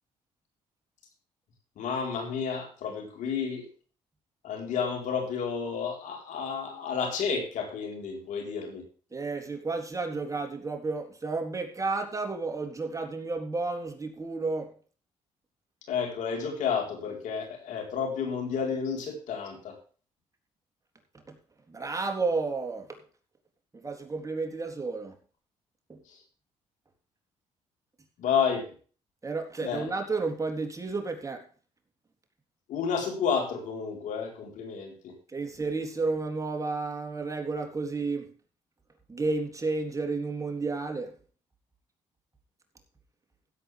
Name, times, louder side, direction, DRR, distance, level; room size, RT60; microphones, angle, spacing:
voice 1, 1.8-3.7 4.4-8.8 15.9-19.8 26.1-26.2 28.2-28.7 29.6-29.9 32.7-35.2, left 6 dB, 80° left, 4.3 m, -31 dB
voice 2, 9.1-14.7 21.3-21.4 21.7-23.0 23.7-25.2 25.9-26.0 29.2-31.4 35.3-38.4 39.1-41.1, right 3 dB, 25° right, 3.6 m, -32 dB
16.5 x 8.3 x 3.5 m
supercardioid pair, 70°, 13 cm